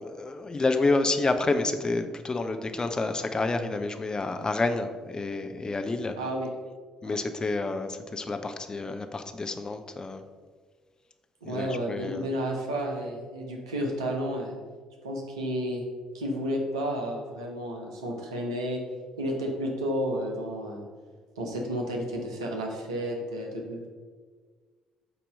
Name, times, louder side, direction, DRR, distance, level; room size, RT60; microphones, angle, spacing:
voice 1, 0.0-6.2 7.0-10.2 11.4-12.3, left 3 dB, 25° left, 7 dB, 0.6 m, -29 dB
voice 2, 6.2-6.5 7.0-7.2 11.4-14.6 15.0-15.8 16.1-18.8 19.2-20.9 21.4-23.8, equal, 80° right, 0 dB, 0.9 m, -31 dB
8.1 x 2.9 x 5.2 m, 1.5 s
figure-of-eight pair, 50°, 3 cm